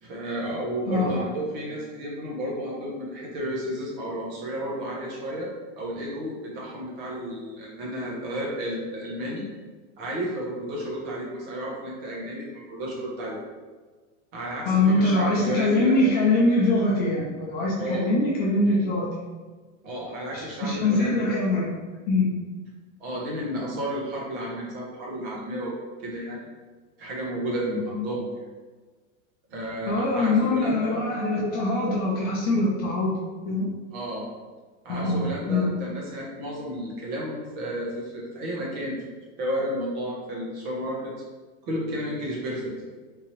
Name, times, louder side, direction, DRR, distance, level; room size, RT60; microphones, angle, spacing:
voice 1, 0.0-5.5 5.8-9.5 10.0-13.4 14.3-16.0 17.8-18.1 19.8-21.3 23.0-25.7 26.0-26.5 27.0-28.2 29.5-31.0 33.9-34.3 34.8-41.1 41.7-42.7, equal, 50° right, -4 dB, 1.3 m, -32 dB
voice 2, 0.8-1.2 14.7-19.1 20.3-21.8 22.1-22.3 29.9-33.1 33.4-33.7 34.9-35.7, left 2 dB, 25° left, -4 dB, 0.5 m, -23 dB
3.8 x 2.8 x 3.0 m, 1.4 s
supercardioid pair, 140°, 38 cm